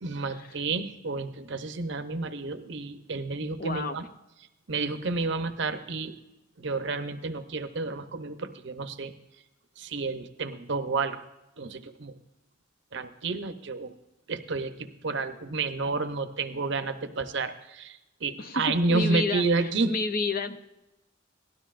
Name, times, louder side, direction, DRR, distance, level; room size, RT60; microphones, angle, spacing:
voice 1, 0.0-4.0 4.7-6.1 6.6-9.1 9.8-11.3 11.6-12.1 12.9-13.9 14.3-20.0, right 3 dB, 60° right, 8 dB, 0.8 m, -30 dB
voice 2, 3.6-4.0 18.4-20.6, left 3 dB, 45° left, 9 dB, 0.6 m, -31 dB
17.5 x 12.5 x 2.5 m, 0.96 s
head